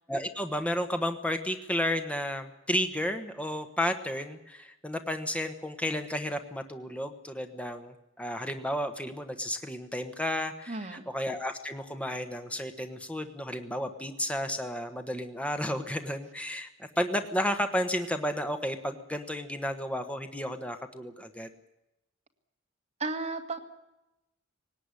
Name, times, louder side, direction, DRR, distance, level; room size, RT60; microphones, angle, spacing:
voice 1, 0.1-16.7 17.0-21.5, equal, 5° left, 7 dB, 1.2 m, -32 dB
voice 2, 10.7-11.0 23.0-23.6, right 3 dB, 35° right, 4 dB, 2.1 m, -34 dB
20.0 x 18.0 x 9.8 m, 0.92 s
head